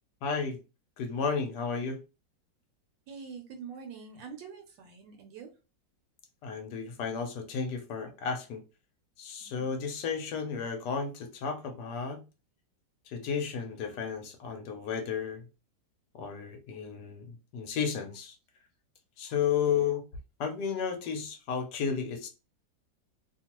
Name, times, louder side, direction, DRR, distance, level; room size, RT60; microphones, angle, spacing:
voice 1, 0.2-0.6 1.0-2.0 6.4-8.6 9.2-12.2 13.1-15.4 16.1-18.3 19.2-20.0 20.4-22.3, left 6 dB, 70° left, 1.1 m, -33 dB
voice 2, 3.1-5.5 9.4-9.7 19.7-19.9, right 6 dB, 80° right, 1.2 m, -45 dB
2.9 x 2.3 x 2.9 m
omnidirectional pair, 2.0 m